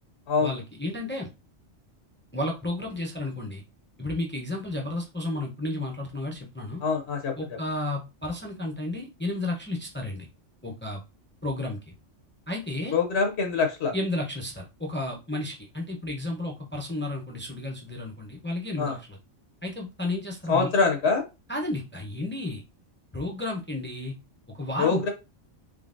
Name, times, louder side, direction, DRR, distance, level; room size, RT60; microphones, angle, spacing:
voice 1, 0.4-1.3 2.3-3.6 4.0-6.8 7.4-10.3 10.6-11.0 11.4-11.9 12.5-13.0 13.9-19.2 19.6-20.7 21.5-22.6 23.1-24.1 24.6-25.1, left 2 dB, 15° left, 0 dB, 0.5 m, -32 dB
voice 2, 6.8-7.3 12.9-13.9 18.8-19.0 20.5-21.2 24.8-25.1, left 4 dB, 65° left, 5 dB, 0.9 m, -24 dB
3.8 x 3.2 x 2.5 m, 0.27 s
omnidirectional pair, 1.3 m